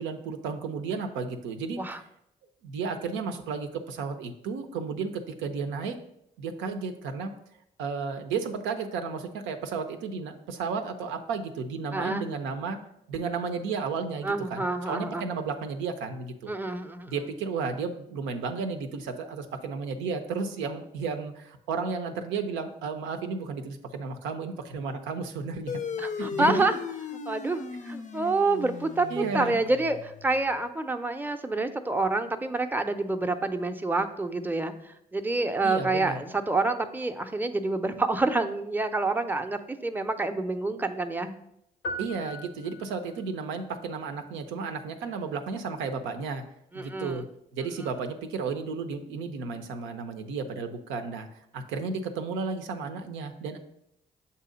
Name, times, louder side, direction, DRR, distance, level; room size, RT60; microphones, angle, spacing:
voice 1, 0.0-1.8 2.6-6.0 6.4-7.3 7.8-12.8 13.1-16.5 17.1-25.7 26.2-26.7 29.1-29.6 35.6-36.2 42.0-46.4 46.7-47.2 47.5-51.3 51.5-53.6, right 5 dB, 85° right, 7 dB, 0.5 m, -33 dB
voice 2, 11.9-12.3 14.2-15.3 16.5-17.1 26.0-26.8 27.3-41.4 46.7-47.2 47.8-47.9, right 2 dB, 10° right, 7 dB, 0.5 m, -28 dB
sound 1, 25.7-30.5, left 6 dB, 40° left, 0.5 m, -37 dB
sound 2, 41.8-43.3, equal, 85° left, 0.7 m, -38 dB
6.8 x 2.7 x 5.0 m, 0.79 s
hypercardioid pair, 45°, 19 cm